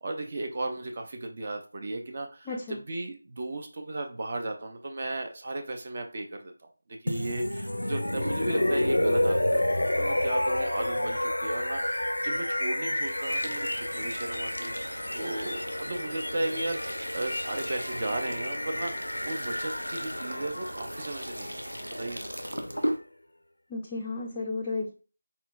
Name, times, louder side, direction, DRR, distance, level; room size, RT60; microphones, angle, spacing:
voice 1, 0.0-14.7 15.1-21.6 22.0-22.3, right 2 dB, 35° right, 4 dB, 0.6 m, -35 dB
voice 2, 2.5-2.8 23.7-24.9, left 3 dB, 15° left, -2 dB, 0.5 m, -33 dB
sound 1, 7.1-22.9, left 1 dB, 70° left, 0.5 m, -30 dB
sound 2, 13.0-23.0, equal, 85° right, 0.9 m, -38 dB
4.3 x 4.2 x 2.5 m, 0.36 s
figure-of-eight pair, 165°, 0 cm